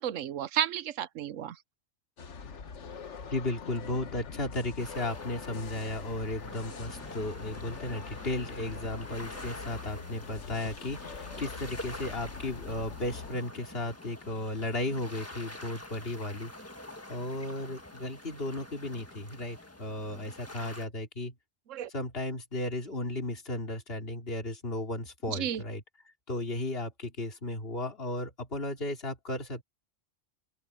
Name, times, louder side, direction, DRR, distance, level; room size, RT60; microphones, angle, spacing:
voice 1, 0.0-1.6 21.7-21.9 25.3-25.6, right 10 dB, 80° right, 1.1 m, -32 dB
sound 1, 2.2-13.3, left 5 dB, 65° left, 1.5 m, -44 dB
voice 2, 3.3-16.5 17.1-21.3 21.9-25.8 26.3-29.6, left 2 dB, 50° left, 3.4 m, -35 dB
sound 2, 4.8-20.9, left 1 dB, 10° left, 1.4 m, -46 dB
open air
omnidirectional pair, 1.3 m